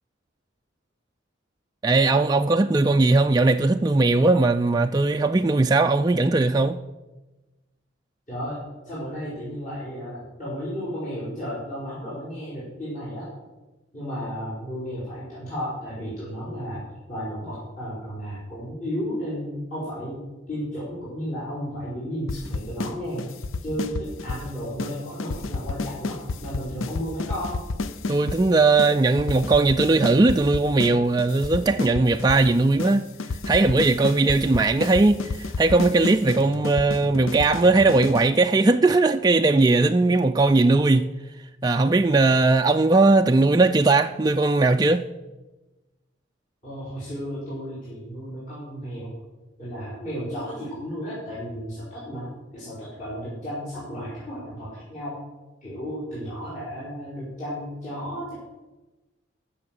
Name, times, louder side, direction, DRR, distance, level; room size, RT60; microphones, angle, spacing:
voice 1, 1.8-6.8 28.1-33.0 33.5-41.1 41.6-45.1, right 3 dB, 20° right, 0.3 m, -19 dB
voice 2, 8.3-8.6 8.8-13.3 13.9-20.2 20.5-23.2 23.6-27.6 46.6-49.1 49.6-52.3 52.5-55.2 55.6-58.3, equal, 40° left, 5.0 m, -33 dB
sound 1, 22.3-22.9 23.2-24.5 24.8-24.9 25.2-28.4 28.8-28.9 29.2-30.9 31.2-32.5 32.8-32.9 33.2-38.3, left 3 dB, 90° left, 0.6 m, -30 dB
14.0 x 6.4 x 7.6 m
head